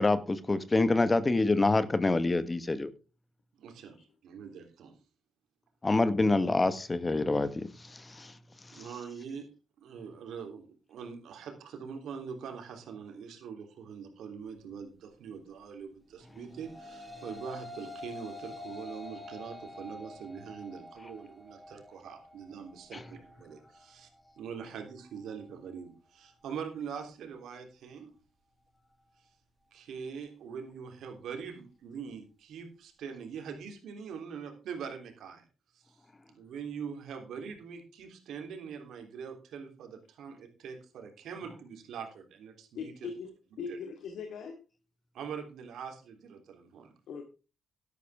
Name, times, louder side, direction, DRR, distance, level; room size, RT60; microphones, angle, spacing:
voice 1, 0.0-2.9 5.8-8.3 22.9-23.0, left 2 dB, 30° left, 1.5 m, -26 dB
voice 2, 3.6-4.0 4.2-4.9 8.7-9.5 9.8-24.1 24.4-28.1 29.7-35.4 35.7-35.9 36.3-43.1 43.7-43.8 45.1-46.9, right 6 dB, 70° right, 3.2 m, -43 dB
sound 1, 16.3-25.4, left 2 dB, 10° right, 5.9 m, -47 dB
voice 3, 42.7-43.3 43.6-44.6 47.1-47.2, left 5 dB, 70° left, 2.0 m, -39 dB
12.0 x 11.5 x 3.5 m
hypercardioid pair, 45°, 0 cm